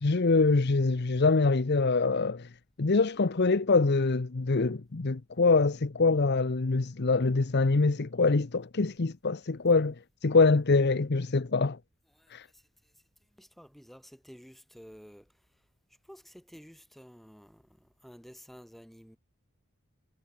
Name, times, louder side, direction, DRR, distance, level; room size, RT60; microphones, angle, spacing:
voice 1, 0.0-2.5 2.8-9.9 10.2-11.8 12.3-12.4, left 3 dB, 55° left, 0.8 m, -24 dB
voice 2, 13.4-15.2 16.1-17.6 18.0-19.2, equal, ahead, 6.1 m, -51 dB
head